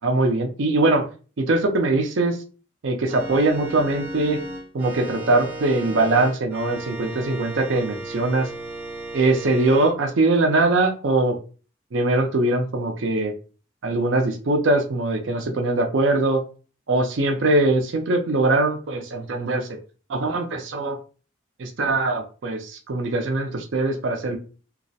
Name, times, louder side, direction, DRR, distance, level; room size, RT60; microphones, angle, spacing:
voice 1, 0.0-1.0 1.4-2.4 2.8-4.4 4.7-8.5 9.1-11.4 11.9-13.3 13.8-16.4 16.9-19.7 20.1-21.0 21.6-24.4, right 2 dB, 75° right, 4 dB, 0.5 m, -22 dB
Organ, 3.1-9.9, right 1 dB, 10° right, 0.5 m, -35 dB
2.3 x 2.0 x 2.7 m, 0.36 s
head